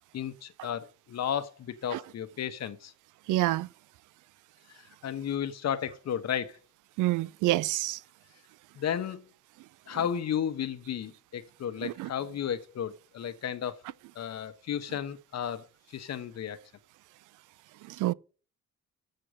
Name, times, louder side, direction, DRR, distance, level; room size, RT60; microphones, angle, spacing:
voice 1, 0.1-2.9 4.7-6.6 8.7-9.2 9.9-13.8 14.1-16.6, left 9 dB, 60° left, 1.1 m, -33 dB
voice 2, 3.3-3.7 7.0-8.0 11.8-12.1 17.9-18.1, right 17 dB, 85° right, 0.5 m, -27 dB
7.7 x 6.6 x 6.3 m
cardioid pair, 90°, 30 cm